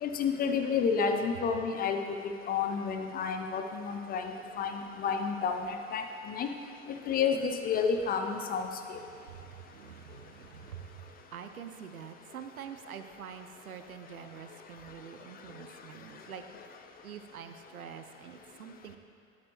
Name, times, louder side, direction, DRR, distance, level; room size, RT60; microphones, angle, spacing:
voice 1, 0.0-2.0 2.5-4.3 4.6-6.5 7.1-9.0, left 6 dB, 20° left, 5 dB, 0.5 m, -30 dB
voice 2, 9.1-16.6 17.0-19.0, right 8 dB, 80° right, 8 dB, 0.6 m, -46 dB
9.3 x 8.8 x 3.1 m, 2.4 s
figure-of-eight pair, 70°, 43 cm